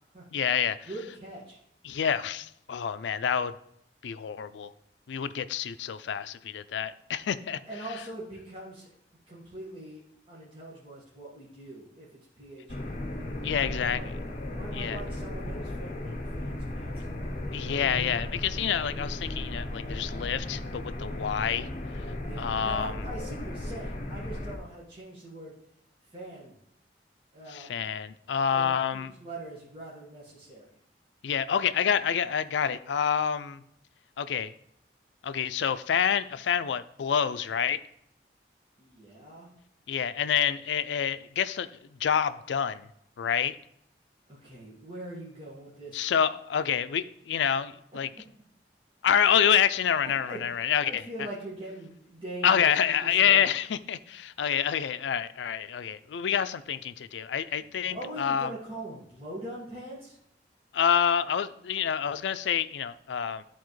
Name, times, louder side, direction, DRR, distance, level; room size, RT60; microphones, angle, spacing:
voice 1, 0.3-0.9 1.8-3.5 4.0-4.7 5.1-7.6 13.4-14.1 14.7-15.0 17.5-21.7 22.4-22.9 27.5-29.1 31.2-33.6 34.2-34.5 35.2-37.8 39.9-41.7 42.0-42.9 43.2-43.6 45.9-48.1 49.0-51.0 52.4-58.5 60.7-63.4, left 8 dB, 90° left, 13 dB, 0.4 m, -27 dB
voice 2, 0.8-1.6 7.7-8.9 9.3-10.0 10.3-14.1 14.5-17.0 22.2-25.5 26.1-26.5 27.3-27.7 28.5-30.7 38.8-39.5 44.3-46.1 50.3-50.4 50.8-53.5 57.8-60.2, right 1 dB, 30° right, -7 dB, 1.6 m, -42 dB
sound 1, 12.7-24.6, left 1 dB, 40° left, 0.9 m, -36 dB
11.5 x 4.1 x 3.1 m, 0.74 s
head